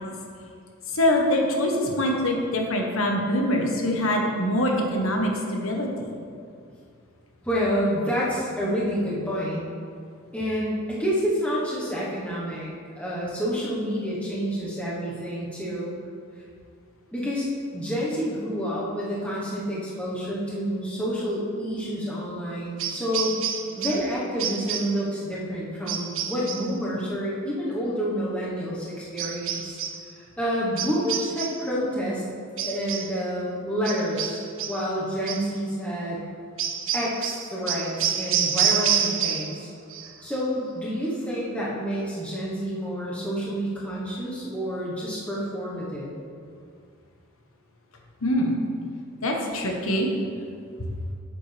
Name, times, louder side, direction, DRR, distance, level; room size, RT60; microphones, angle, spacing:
voice 1, 0.9-6.2 48.2-48.6 49.2-50.1, left 1 dB, 70° left, 1 dB, 1.2 m, -24 dB
voice 2, 7.4-9.7 10.3-15.9 17.1-17.5 17.7-23.4 23.8-29.8 30.2-32.2 32.6-34.4 34.7-36.2 36.9-39.7 40.2-46.1, equal, 5° left, -7 dB, 1.2 m, -28 dB
sound 1, 22.8-24.1 24.4-25.0 25.9-26.7 29.2-30.0 30.8-31.7 32.6-33.2 33.8-34.9 35.3-35.5 36.6-39.6 39.9-40.4, right 8 dB, 60° right, 0.6 m, -28 dB
8.5 x 7.7 x 3.4 m, 2.3 s
head